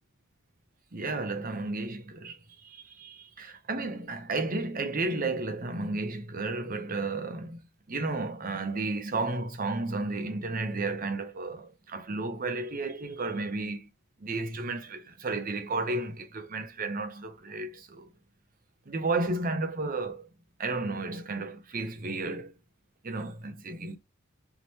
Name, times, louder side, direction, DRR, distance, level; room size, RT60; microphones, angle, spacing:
voice 1, 0.9-7.6 7.9-13.8 14.2-18.1 18.9-20.3 20.6-22.5 23.0-24.0, right 3 dB, 40° right, 0.8 m, -33 dB
3.7 x 3.1 x 4.1 m
head